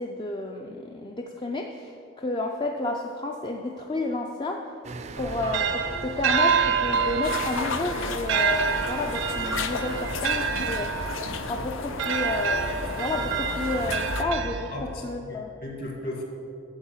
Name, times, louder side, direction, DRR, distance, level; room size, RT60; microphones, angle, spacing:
voice 1, 0.0-4.7 5.2-11.1 11.4-15.5, left 2 dB, 25° left, 2 dB, 0.4 m, -31 dB
sound 1, 4.8-11.3, right 3 dB, 35° right, 0.4 m, -43 dB
sound 2, 5.2-15.1, right 5 dB, 75° right, 0.6 m, -28 dB
sound 3, 7.2-14.2, left 5 dB, 80° left, 0.6 m, -34 dB
voice 2, 14.7-16.2, left 1 dB, 45° left, 0 dB, 1.9 m, -36 dB
8.7 x 7.4 x 7.2 m, 2.6 s
head